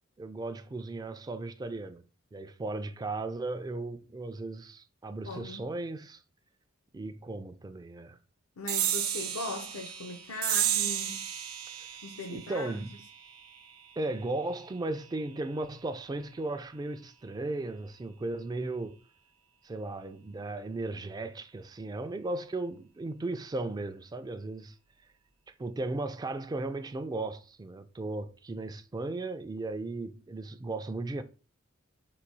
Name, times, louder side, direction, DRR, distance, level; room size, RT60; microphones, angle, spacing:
voice 1, 0.2-2.0 2.3-6.2 6.9-8.2 11.7-11.9 12.3-12.9 14.0-19.0 19.6-24.8 25.5-31.2, right 2 dB, 20° right, 0.3 m, -36 dB
voice 2, 5.2-5.6 8.6-11.2 12.0-12.9, left 2 dB, 85° left, 0.7 m, -39 dB
sound 1, 8.7-15.5, right 11 dB, 80° right, 0.6 m, -34 dB
3.9 x 2.7 x 4.6 m
head